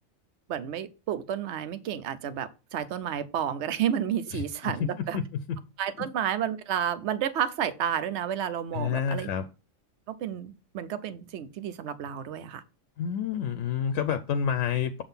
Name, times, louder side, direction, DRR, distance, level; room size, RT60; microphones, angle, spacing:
voice 1, 0.5-5.2 5.8-9.3 10.1-12.6, right 9 dB, 60° right, 0.9 m, -31 dB
voice 2, 4.3-5.2 5.5-5.6 8.7-9.4 13.0-15.0, left 8 dB, 70° left, 0.9 m, -29 dB
6.9 x 3.6 x 5.6 m
omnidirectional pair, 1.4 m